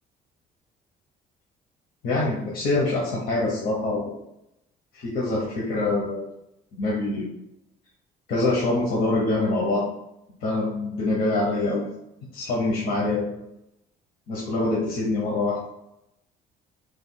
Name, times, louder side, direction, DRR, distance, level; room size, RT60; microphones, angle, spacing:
voice 1, 2.0-4.1 4.9-6.3 6.7-7.3 8.3-9.8 10.4-11.9 12.3-13.4 14.3-15.7, left 2 dB, 60° left, -5 dB, 0.8 m, -25 dB
3.5 x 3.2 x 2.2 m, 0.84 s
cardioid pair, 110°, 17 cm